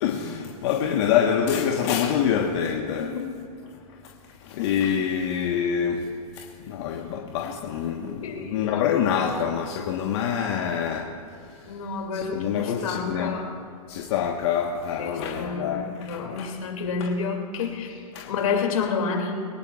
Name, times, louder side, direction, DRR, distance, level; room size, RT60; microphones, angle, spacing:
voice 1, 0.0-3.1 4.0-4.1 4.4-6.1 6.3-11.1 11.4-11.8 12.1-13.4 13.9-16.5 17.0-17.1 18.1-18.3, left 8 dB, 50° left, 1 dB, 1.2 m, -26 dB
voice 2, 3.0-3.3 8.2-8.8 11.7-13.5 15.0-19.4, left 5 dB, 70° left, 2 dB, 2.4 m, -29 dB
22.5 x 19.0 x 2.4 m, 2.4 s
hypercardioid pair, 120°, 19 cm